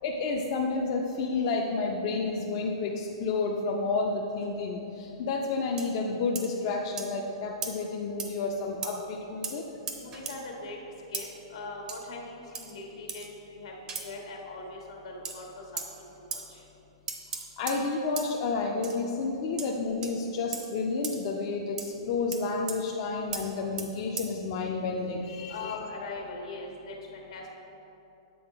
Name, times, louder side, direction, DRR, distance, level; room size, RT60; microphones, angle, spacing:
voice 1, 0.0-9.6 17.6-25.7, left 4 dB, 45° left, -1 dB, 0.5 m, -30 dB
sound 1, 5.8-5.9 6.3-6.5 7.0-7.1 7.6-7.7 8.2-8.3 8.8-8.9 9.4-9.6 9.9-10.4 11.1-11.3 11.9-12.0 12.5-12.7 13.1-13.3 13.9-14.1 15.2-15.4 15.8-15.9 16.3-16.4 17.1-17.8 18.2-18.3 18.8-19.0 19.6-19.7 20.0-20.1 20.5-20.7 21.0-21.2 21.8-21.9 22.3-22.4 22.7-22.8 23.3-23.4 23.8-23.9 24.2-24.3, right 6 dB, 25° right, 0.6 m, -36 dB
voice 2, 10.0-10.8 11.1-13.2 13.5-13.7 14.0-15.4 15.7-15.8 16.3-16.6 25.5-26.9 27.3-27.5, left 3 dB, 75° left, 0 dB, 1.4 m, -40 dB
7.8 x 3.7 x 4.9 m, 2.8 s
hypercardioid pair, 145°, 3 cm